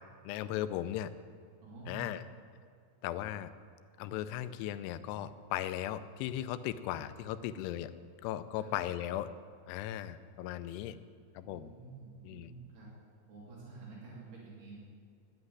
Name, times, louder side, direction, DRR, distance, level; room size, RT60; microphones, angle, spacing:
voice 1, 0.3-1.1 1.9-2.2 3.0-3.5 4.0-7.9 8.2-9.3 9.7-11.0 11.4-11.7 12.2-12.5, left 12 dB, 90° left, 13 dB, 2.7 m, -37 dB
voice 2, 1.6-2.1 6.9-7.0 8.5-8.7 11.4-12.9 13.3-14.8, right 4 dB, 75° right, -6 dB, 4.7 m, -49 dB
9.7 x 9.0 x 9.9 m, 2.4 s
omnidirectional pair, 4.7 m